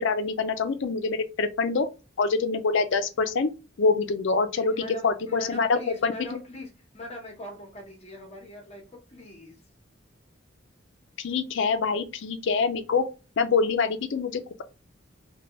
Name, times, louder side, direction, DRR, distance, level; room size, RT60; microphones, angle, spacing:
voice 1, 0.0-1.9 2.2-3.5 3.8-4.7 5.0-6.1 11.2-13.0 13.4-14.6, left 4 dB, 65° left, 0.5 m, -25 dB
voice 2, 4.7-9.6, left 1 dB, 35° left, 0.9 m, -41 dB
2.8 x 2.2 x 3.0 m
head